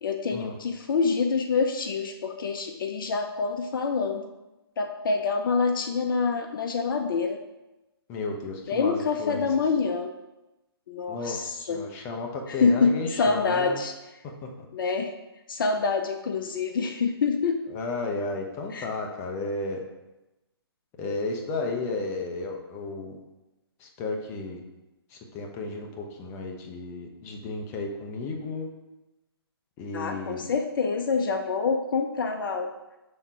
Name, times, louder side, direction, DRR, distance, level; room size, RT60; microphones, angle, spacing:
voice 1, 0.0-4.3 4.8-7.4 8.7-10.1 10.9-11.8 12.5-13.9 14.7-15.1 15.5-17.6 18.7-18.9 29.9-32.7, left 4 dB, 55° left, 5 dB, 0.6 m, -26 dB
voice 2, 8.1-9.5 11.1-13.8 17.7-19.8 21.0-23.2 23.8-24.6 25.1-28.7 29.8-30.5, left 3 dB, 20° left, 2 dB, 0.8 m, -33 dB
6.5 x 3.6 x 5.6 m, 1.0 s
hypercardioid pair, 145°, 13 cm